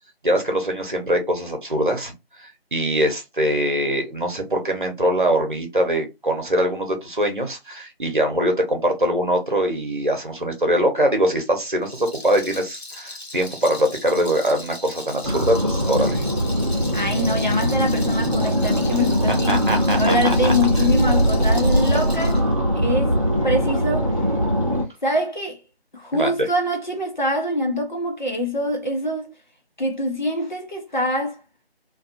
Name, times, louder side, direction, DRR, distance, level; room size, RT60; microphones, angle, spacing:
voice 1, 0.2-2.1 2.4-16.2 19.3-20.5 26.1-26.3, equal, 55° right, 1.0 m, -22 dB
Rattle, 11.8-22.4, left 2 dB, 80° left, 1.1 m, -38 dB
sound 1, 15.2-24.8, equal, 35° right, 0.7 m, -21 dB
voice 2, 16.9-19.7 19.9-22.4 22.7-24.1 25.0-25.6 25.9-29.3 29.8-31.4, left 1 dB, 45° left, 0.8 m, -24 dB
2.5 x 2.4 x 2.5 m
figure-of-eight pair, 170°, 31 cm